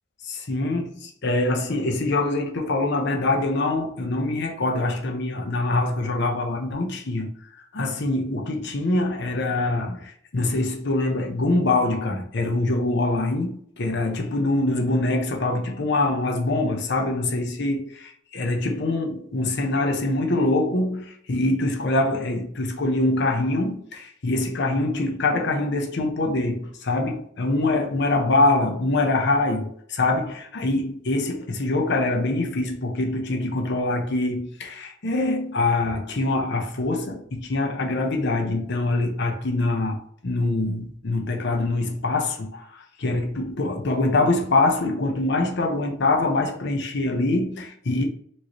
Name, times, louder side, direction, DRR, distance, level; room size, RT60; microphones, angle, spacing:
voice 1, 0.2-7.3 7.7-48.0, left 2 dB, 60° left, 0.9 m, -24 dB
4.5 x 3.1 x 3.0 m
head